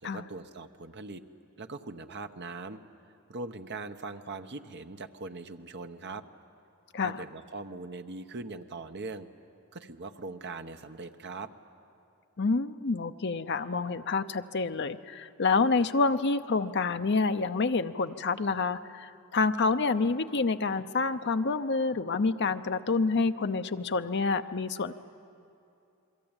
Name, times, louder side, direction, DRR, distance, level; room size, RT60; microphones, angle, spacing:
voice 1, 0.0-1.2 1.6-2.8 3.3-6.2 7.0-9.3 9.7-11.5, right 3 dB, 55° right, 8 dB, 1.0 m, -41 dB
voice 2, 12.4-24.9, left 4 dB, 55° left, 9 dB, 0.7 m, -28 dB
28.5 x 22.0 x 8.9 m, 2.6 s
head